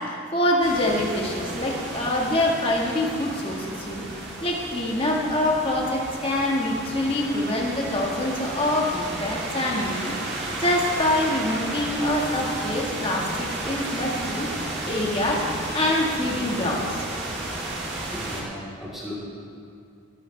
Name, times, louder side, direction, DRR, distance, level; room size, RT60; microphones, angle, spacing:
voice 1, 0.0-10.2 10.6-14.5 14.9-15.5 15.7-17.0, left 1 dB, 25° left, -2 dB, 1.6 m, -25 dB
sound 1, 0.6-18.4, right 2 dB, 50° right, 2.1 m, -33 dB
voice 2, 18.1-19.1, left 1 dB, ahead, -9 dB, 3.3 m, -37 dB
18.0 x 11.5 x 3.3 m, 2.5 s
head